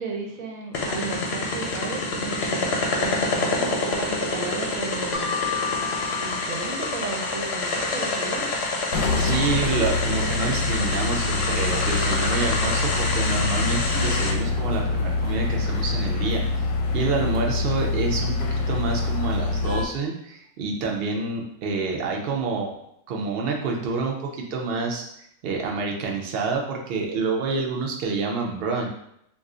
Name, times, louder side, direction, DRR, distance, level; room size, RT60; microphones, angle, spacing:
voice 1, 0.0-5.3 6.2-8.5, right 4 dB, 80° right, 1 dB, 1.1 m, -34 dB
sound 1, 0.7-14.3, left 3 dB, 60° left, 0.7 m, -27 dB
Mallet percussion, 5.1-7.9, left 7 dB, 25° right, 0.8 m, -33 dB
sound 2, 8.9-19.9, left 3 dB, 90° left, 1.0 m, -25 dB
voice 2, 9.1-16.7 16.9-22.7 23.1-25.1 25.4-28.9, right 4 dB, 60° right, 0 dB, 0.7 m, -28 dB
2.5 x 2.3 x 3.7 m, 0.76 s
omnidirectional pair, 1.5 m